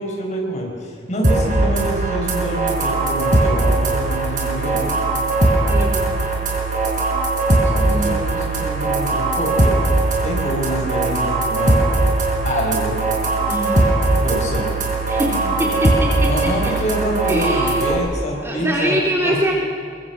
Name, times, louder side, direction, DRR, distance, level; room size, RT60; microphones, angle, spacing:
voice 1, 0.0-4.9 7.6-9.8 10.2-11.8 12.4-13.0 14.2-14.8 15.3-15.7 16.3-19.0 19.2-19.4, equal, 40° left, -1 dB, 5.4 m, -26 dB
sound 1, 1.2-17.9, right 2 dB, 45° right, 4.3 m, -19 dB
voice 2, 5.6-6.1 7.9-8.1 13.5-13.9 15.1-15.9 16.2-16.3 17.2-17.9 18.4-19.5, equal, 15° right, -2 dB, 2.6 m, -23 dB
23.0 x 22.5 x 6.1 m, 2.5 s
head